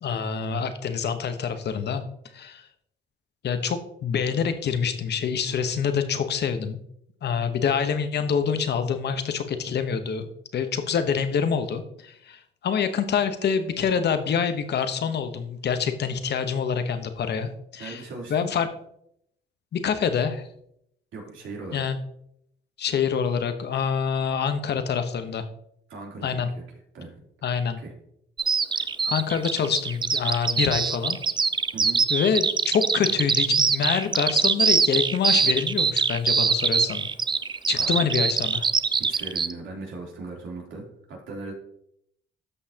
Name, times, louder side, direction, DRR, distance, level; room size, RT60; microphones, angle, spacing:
voice 1, 0.0-2.0 2.3-2.6 3.4-6.8 7.2-18.0 18.3-18.7 19.7-20.4 21.7-22.0 22.8-25.4 26.2-26.5 27.4-27.8 28.7-31.2 32.1-37.1 37.7-38.7, left 7 dB, 60° left, 9 dB, 1.1 m, -26 dB
voice 2, 17.8-18.5 21.1-21.8 25.9-26.6 26.9-27.2 27.8-27.9 31.7-32.0 37.7-38.1 38.9-41.5, right 3 dB, 75° right, -2 dB, 3.3 m, -38 dB
Bird vocalization bird call bird song, 28.4-39.5, right 5 dB, 25° right, 0.4 m, -23 dB
13.5 x 5.5 x 2.9 m, 0.72 s
cardioid pair, 90°, 20 cm